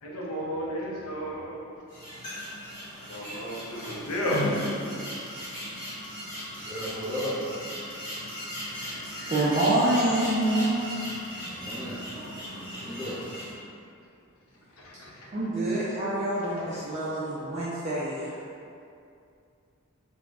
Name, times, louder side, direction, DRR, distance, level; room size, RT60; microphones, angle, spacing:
voice 1, 0.0-1.9 3.1-4.5 6.4-6.5 7.8-8.0 8.6-9.3 14.7-15.3 16.4-16.8, equal, 75° left, -3 dB, 0.5 m, -34 dB
Weird Bird, 1.9-13.5, equal, 35° left, 1.3 m, -37 dB
voice 2, 6.5-7.4 11.4-12.0 12.8-13.2, left 1 dB, 20° left, -10 dB, 0.7 m, -35 dB
voice 3, 8.8-10.7 12.2-12.6 15.3-18.3, right 1 dB, 30° right, -9 dB, 0.3 m, -27 dB
2.4 x 2.1 x 3.1 m, 2.5 s
head